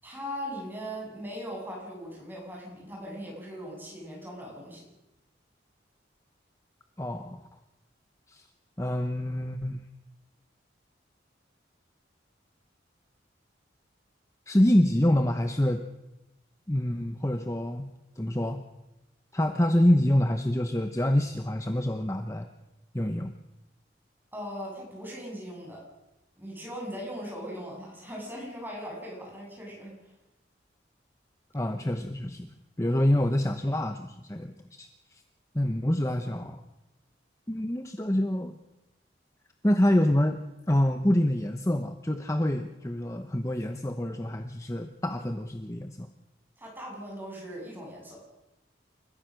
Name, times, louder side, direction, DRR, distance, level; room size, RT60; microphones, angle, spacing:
voice 1, 0.0-4.8 24.3-25.8 26.4-29.9 46.6-48.2, equal, 10° right, -3 dB, 7.7 m, -39 dB
voice 2, 7.0-7.4 8.3-8.5 8.8-9.8 14.5-15.8 16.7-17.9 18.2-18.6 19.3-22.5 22.9-23.3 31.5-35.2 35.5-36.6 37.5-38.6 39.6-40.4 40.7-46.1, left 1 dB, 15° left, 7 dB, 0.9 m, -26 dB
29.0 x 15.0 x 6.5 m, 0.97 s
head